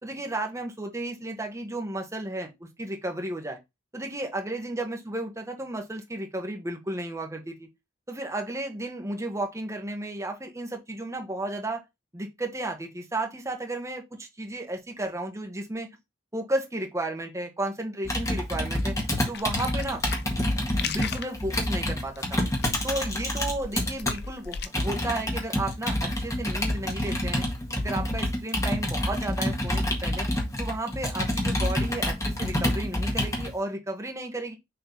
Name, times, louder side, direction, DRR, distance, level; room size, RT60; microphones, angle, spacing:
voice 1, 0.0-3.6 3.9-7.7 8.1-11.8 12.1-15.9 16.3-18.9 19.3-20.0 20.8-22.4 22.8-27.5 27.8-30.3 30.6-34.5, right 1 dB, 15° right, 1.6 m, -33 dB
Computer keyboard, 18.0-24.1 24.7-33.5, left 1 dB, 20° left, 1.8 m, -27 dB
sound 1, 19.3-24.7, left 6 dB, 60° left, 0.7 m, -37 dB
6.8 x 3.8 x 4.0 m
head